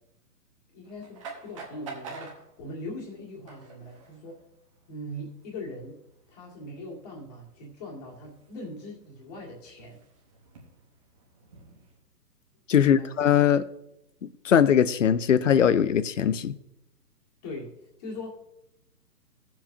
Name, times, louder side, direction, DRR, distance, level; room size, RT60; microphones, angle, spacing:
voice 1, 0.7-4.4 4.9-6.0 6.3-10.0 12.8-13.2 17.4-17.7 18.0-18.3, left 1 dB, 25° left, -2 dB, 1.9 m, -40 dB
sound 1, 0.8-12.0, right 4 dB, 20° right, 1.0 m, -49 dB
voice 2, 12.7-13.6 14.4-16.6, left 9 dB, 50° left, 15 dB, 0.5 m, -21 dB
16.5 x 7.4 x 2.7 m, 0.85 s
hypercardioid pair, 165°, 49 cm